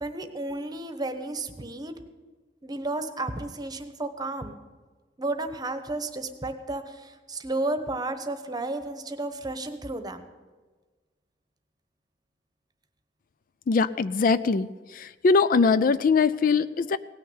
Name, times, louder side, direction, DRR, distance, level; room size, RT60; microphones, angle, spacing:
voice 1, 0.0-1.9 2.6-4.6 5.2-10.3, right 2 dB, 25° right, 9 dB, 1.0 m, -32 dB
voice 2, 13.7-17.0, left 4 dB, 50° left, 15 dB, 0.4 m, -22 dB
17.5 x 6.5 x 9.5 m, 1.4 s
head